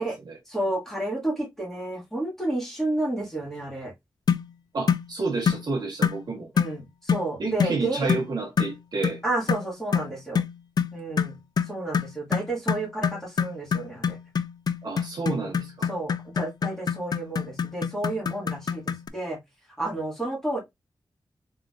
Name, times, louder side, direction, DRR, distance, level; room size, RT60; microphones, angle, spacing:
voice 1, 0.5-3.9 6.5-8.1 9.2-10.4 10.9-11.4 11.7-14.2 15.2-19.4 19.8-20.6, right 2 dB, 5° left, 1.8 m, -31 dB
sound 1, 4.3-4.5 4.9-5.1 5.5-5.7 6.0-6.2 6.6-6.8 7.1-7.3 7.6-7.8 8.1-8.3 8.6-8.8 9.0-9.2 9.5-19.1, left 7 dB, 55° left, 0.3 m, -26 dB
voice 2, 4.7-6.5 7.4-9.2 14.8-15.9, right 3 dB, 60° right, 1.5 m, -30 dB
3.8 x 3.6 x 2.4 m
wide cardioid pair, 145°, 8 cm